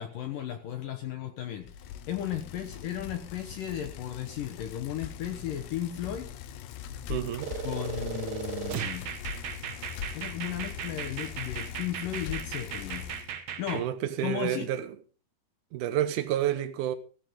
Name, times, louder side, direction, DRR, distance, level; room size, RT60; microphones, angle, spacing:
voice 1, 0.0-1.7 2.1-6.3 7.6-9.0 10.1-13.0 13.6-13.9 14.2-14.7, left 11 dB, 65° left, 2.3 m, -35 dB
Bicycle, 1.6-13.3, left 9 dB, 90° left, 3.1 m, -41 dB
voice 2, 7.1-7.5 13.7-14.9 15.7-17.0, right 11 dB, 80° right, 1.8 m, -29 dB
sound 1, 7.4-13.8, right 8 dB, 60° right, 1.9 m, -37 dB
15.0 x 13.5 x 3.7 m
omnidirectional pair, 4.7 m